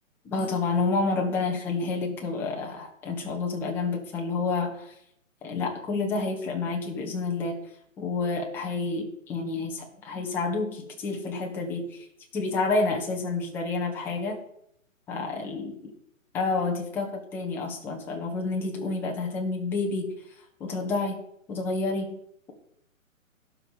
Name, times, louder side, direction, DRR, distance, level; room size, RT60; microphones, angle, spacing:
voice 1, 0.2-4.9 5.4-7.5 8.0-12.1 12.3-14.4 15.1-15.7 16.3-20.1 20.6-21.2 21.5-22.2, left 3 dB, 5° left, 0 dB, 0.7 m, -29 dB
11.5 x 4.8 x 5.4 m, 0.71 s
figure-of-eight pair, 140°, 41 cm